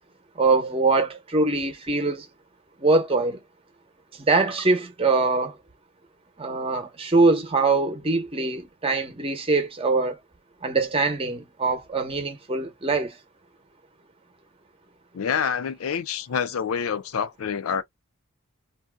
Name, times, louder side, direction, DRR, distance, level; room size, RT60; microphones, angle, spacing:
voice 1, 0.4-2.3 2.8-3.4 4.3-5.6 6.4-10.2 10.6-13.2, right 3 dB, 25° right, 0.8 m, -23 dB
voice 2, 15.1-17.8, left 7 dB, 85° left, 0.5 m, -27 dB
2.6 x 2.3 x 3.4 m
head